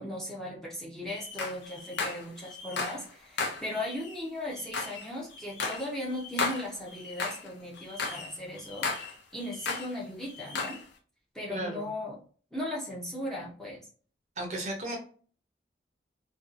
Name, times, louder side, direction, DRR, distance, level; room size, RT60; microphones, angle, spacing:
voice 1, 0.0-8.9 9.3-10.8 11.3-12.2 12.5-13.8, left 1 dB, ahead, -5 dB, 0.6 m, -37 dB
sound 1, 1.1-3.1 3.4-7.5 7.8-10.0 10.2-10.8, left 4 dB, 80° left, 0.6 m, -35 dB
voice 2, 11.5-11.9 14.4-15.0, right 1 dB, 40° right, 2 dB, 0.6 m, -35 dB
2.6 x 2.3 x 2.5 m, 0.41 s
head